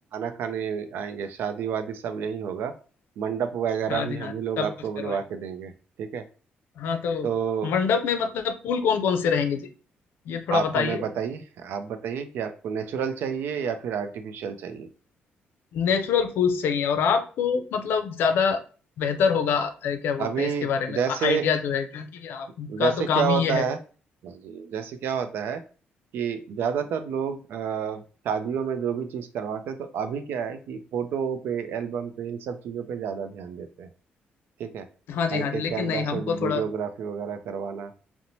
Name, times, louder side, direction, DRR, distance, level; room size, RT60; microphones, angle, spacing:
voice 1, 0.1-2.7 3.2-5.7 6.0-6.2 7.2-7.7 10.5-14.9 20.2-21.5 22.7-23.8 24.2-25.6 26.1-33.9 34.6-34.9 35.3-37.9, right 7 dB, 80° right, 9 dB, 0.4 m, -30 dB
voice 2, 3.9-4.7 5.0-5.2 6.8-7.3 7.6-9.7 10.3-11.0 15.7-18.6 19.0-23.6 35.1-36.6, left 6 dB, 80° left, 7 dB, 0.4 m, -25 dB
2.7 x 2.1 x 3.0 m, 0.37 s
cardioid pair, 125°, 4 cm